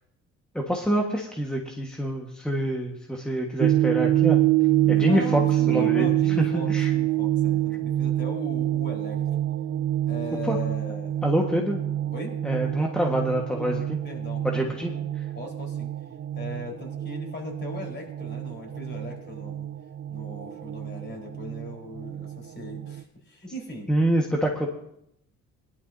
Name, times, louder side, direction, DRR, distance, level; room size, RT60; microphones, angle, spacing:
voice 1, 0.5-4.4 4.9-6.9 10.4-10.6 11.2-11.8 12.4-13.8 14.4-15.3 23.9-24.7, equal, 5° left, 0 dB, 1.5 m, -26 dB
sound 1, 3.6-23.0, right 13 dB, 45° right, 0.6 m, -26 dB
voice 2, 4.8-9.2 10.1-11.2 12.1-12.4 13.5-14.7 15.3-15.9 16.4-19.7 20.1-23.9, left 1 dB, 35° left, 0 dB, 4.3 m, -39 dB
18.5 x 11.5 x 2.7 m, 0.76 s
cardioid pair, 90°, 30 cm